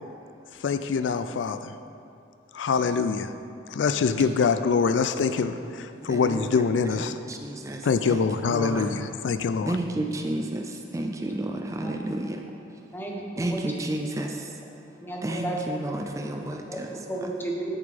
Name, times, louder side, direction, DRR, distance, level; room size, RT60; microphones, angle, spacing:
voice 1, 0.6-1.7 2.5-3.3 3.7-7.2 7.8-9.8, left 5 dB, 85° left, 11 dB, 0.4 m, -24 dB
voice 2, 6.0-6.6 6.9-7.0 7.3-8.9 9.7-12.4 13.4-14.6 15.2-16.9 17.2-17.3, right 1 dB, 15° right, 3 dB, 0.4 m, -31 dB
voice 3, 12.9-13.8 14.2-14.4 14.8-15.8 16.7-17.8, right 1 dB, 10° left, -1 dB, 1.0 m, -33 dB
9.8 x 8.9 x 3.5 m, 2.6 s
head